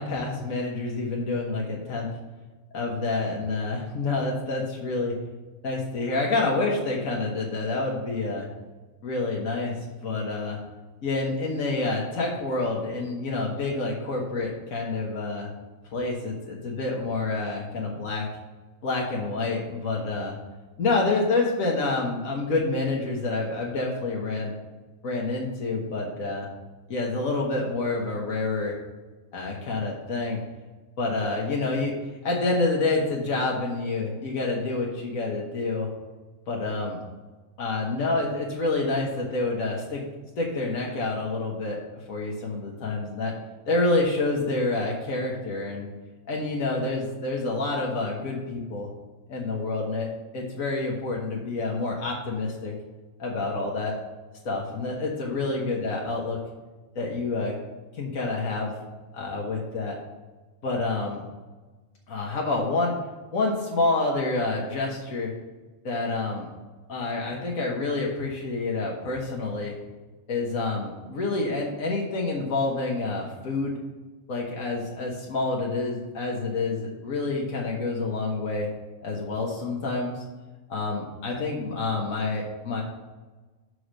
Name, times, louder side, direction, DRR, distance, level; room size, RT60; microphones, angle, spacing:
voice 1, 0.0-2.1 2.7-5.1 5.6-8.5 9.0-10.6 11.0-15.5 15.9-18.3 18.8-20.3 20.8-24.5 25.0-26.5 26.9-28.7 29.3-30.4 31.0-31.9 32.2-35.9 36.5-37.0 37.6-40.0 40.4-43.3 43.7-45.9 46.3-48.9 49.3-50.1 50.3-52.7 53.2-53.9 54.5-56.4 57.0-57.5 58.0-58.7 59.1-60.0 60.6-61.2 62.1-62.9 63.3-65.3 65.8-66.5 66.9-69.7 70.3-73.8 74.3-78.7 79.0-80.2 80.7-82.8, left 3 dB, 85° left, -2 dB, 1.6 m, -28 dB
6.3 x 4.9 x 6.4 m, 1.2 s
omnidirectional pair, 1.4 m